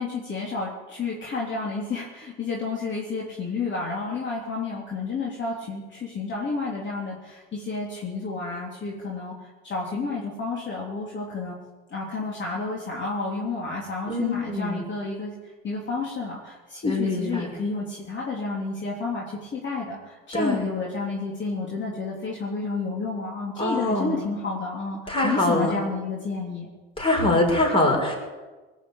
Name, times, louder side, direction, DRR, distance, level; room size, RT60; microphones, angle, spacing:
voice 1, 0.0-11.6 11.9-15.3 15.6-26.7, left 4 dB, 35° left, -3 dB, 3.6 m, -30 dB
voice 2, 14.1-14.8 16.8-17.5 20.4-20.7 23.6-24.2 25.1-25.8 27.0-28.2, left 1 dB, 15° left, 0 dB, 6.2 m, -23 dB
20.5 x 7.3 x 8.8 m, 1.2 s
hypercardioid pair, 75°, 31 cm